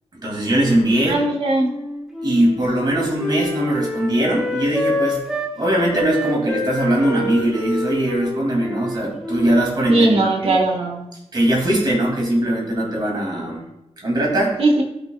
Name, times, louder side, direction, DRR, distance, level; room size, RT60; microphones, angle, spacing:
voice 1, 0.2-1.2 2.2-5.2 5.5-10.1 10.4-10.6 11.3-13.6 14.0-14.6, right 1 dB, 40° right, -1 dB, 2.5 m, -20 dB
voice 2, 1.1-1.8 9.9-11.0 14.6-14.8, right 2 dB, 60° right, 1 dB, 1.2 m, -19 dB
Wind instrument woodwind instrument, 1.6-5.5 5.9-10.3, left 1 dB, 5° right, 1.0 m, -27 dB
13.0 x 6.2 x 2.4 m, 0.91 s
wide cardioid pair, 175°, 11 cm